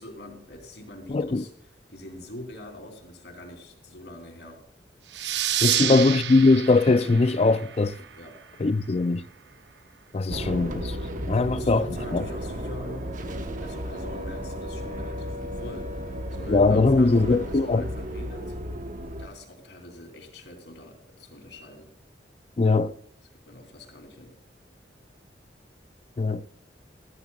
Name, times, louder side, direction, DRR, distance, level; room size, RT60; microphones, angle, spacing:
voice 1, 0.0-1.5 1.9-4.6 5.7-6.0 8.2-8.4 11.5-13.2 13.6-18.6 19.2-21.9 23.5-24.4, left 1 dB, 70° left, 3.4 m, -43 dB
voice 2, 1.1-1.4 5.6-8.0 8.6-9.2 10.1-11.0 11.2-11.9 12.1-12.2 16.5-17.8 22.6-22.9 26.2-26.5, left 3 dB, 35° left, 0.4 m, -21 dB
sound 1, 5.1-8.4, right 11 dB, 70° right, 0.7 m, -29 dB
sound 2, 10.3-19.3, equal, 45° right, 1.1 m, -34 dB
15.0 x 14.5 x 2.4 m
head